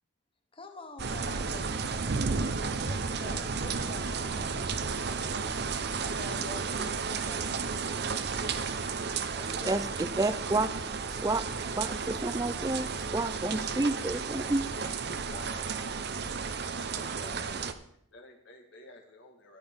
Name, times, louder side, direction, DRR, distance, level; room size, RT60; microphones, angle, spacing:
voice 1, 0.5-4.7 6.1-7.6 9.4-9.9 13.4-13.6 14.8-15.6 16.9-17.5, left 2 dB, 25° left, 6 dB, 1.1 m, -48 dB
sound 1, 1.0-17.7, right 5 dB, 50° right, 0.7 m, -33 dB
voice 2, 10.2-10.7 11.1-11.4 11.8-12.9 13.1-14.7, right 2 dB, 15° right, 12 dB, 0.4 m, -29 dB
voice 3, 14.9-16.3 17.4-17.7 18.1-19.6, left 1 dB, 60° left, 2 dB, 1.4 m, -52 dB
13.5 x 10.0 x 3.6 m, 0.70 s
head